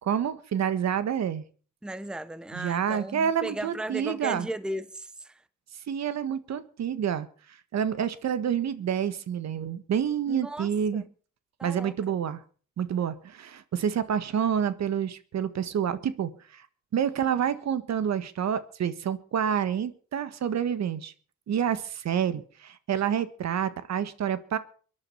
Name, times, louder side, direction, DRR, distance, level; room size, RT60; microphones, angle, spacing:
voice 1, 0.0-1.4 2.5-4.5 5.9-7.3 7.7-11.0 11.6-12.4 12.8-16.7 16.9-21.1 21.5-24.6, right 8 dB, 60° right, 1.6 m, -28 dB
voice 2, 1.8-5.4 10.3-11.1 11.6-11.9, right 1 dB, 5° right, 0.9 m, -36 dB
23.5 x 10.5 x 5.6 m
cardioid pair, 90°, 30 cm